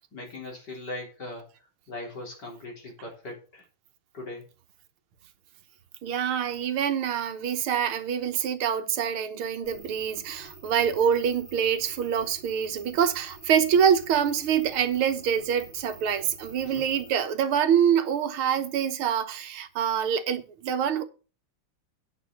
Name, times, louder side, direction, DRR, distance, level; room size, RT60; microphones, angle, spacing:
voice 1, 0.1-1.4 1.9-3.6 4.1-4.4 16.6-16.8, left 2 dB, 50° left, 4.3 m, -39 dB
voice 2, 6.0-21.0, right 8 dB, 75° right, 1.9 m, -25 dB
sound 1, 9.6-17.1, right 2 dB, 10° left, 3.2 m, -48 dB
9.2 x 6.4 x 6.2 m
omnidirectional pair, 2.4 m